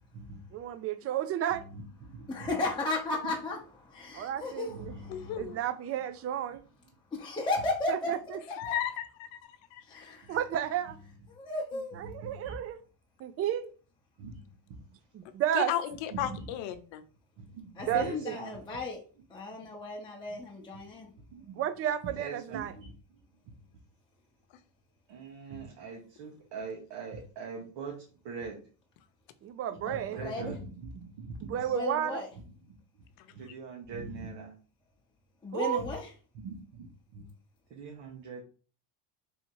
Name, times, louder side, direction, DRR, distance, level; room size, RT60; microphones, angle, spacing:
voice 1, 0.5-1.6 4.1-4.9 5.4-6.6 7.9-8.4 10.3-11.0 12.0-12.8 13.2-13.7 15.1-15.7 17.9-18.4 21.6-22.7 29.4-30.2 31.4-32.2 35.5-35.8, right 10 dB, 35° right, 0.4 m, -32 dB
voice 2, 1.5-2.5 3.2-3.3 4.7-5.5 12.0-12.6 14.2-14.4 16.1-16.5 17.4-18.6 19.5-19.6 20.3-20.4 21.3-21.6 22.1-22.9 25.1-28.6 29.9-31.7 32.0-32.1 33.3-34.5 35.8-35.9 36.3-36.9 37.1-37.3 37.7-38.4, right 4 dB, 65° right, 1.2 m, -42 dB
voice 3, 2.3-5.4 7.1-8.4 9.9-10.3 11.3-12.0 17.8-19.0 19.3-21.1 29.8-30.5 31.7-32.3 35.4-36.1, left 2 dB, 10° left, 0.8 m, -35 dB
voice 4, 5.1-5.6 8.5-9.4 9.7-9.8 15.5-17.0, left 11 dB, 75° left, 0.7 m, -34 dB
3.5 x 2.8 x 4.5 m
cardioid pair, 115°, 46 cm